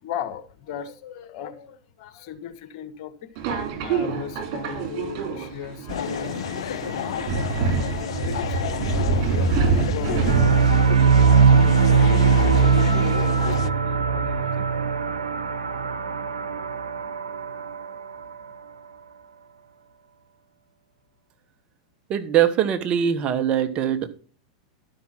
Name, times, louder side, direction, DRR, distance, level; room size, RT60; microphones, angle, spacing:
voice 1, 0.0-6.7 6.9-7.2 8.2-8.7 9.9-11.5 11.9-14.8, left 8 dB, 55° left, 1.4 m, -37 dB
Subway metro underground, 3.4-10.9, right 4 dB, 50° right, 3.7 m, -26 dB
sound 1, 5.9-13.7, left 11 dB, 70° left, 0.4 m, -31 dB
sound 2, 10.3-18.5, right 6 dB, 90° right, 1.0 m, -20 dB
voice 2, 22.1-24.1, right 9 dB, 35° right, 1.3 m, -22 dB
12.5 x 5.9 x 5.9 m
hypercardioid pair, 100°, 3 cm